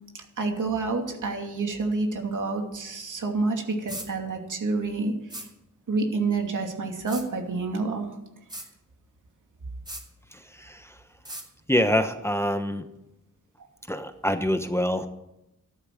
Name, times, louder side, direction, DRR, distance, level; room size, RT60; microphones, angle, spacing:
voice 1, 0.1-5.5 5.9-8.2, right 3 dB, 70° right, 3 dB, 2.7 m, -28 dB
sound 1, 3.9-4.1 5.3-5.5 7.1-7.3 8.5-8.7 9.9-10.0 11.2-11.5, right 1 dB, 15° right, 3.1 m, -37 dB
voice 2, 10.3-11.0 11.7-12.9 13.9-15.1, left 1 dB, 10° left, 8 dB, 1.0 m, -26 dB
14.0 x 11.5 x 7.7 m, 0.90 s
wide cardioid pair, 110°, 32 cm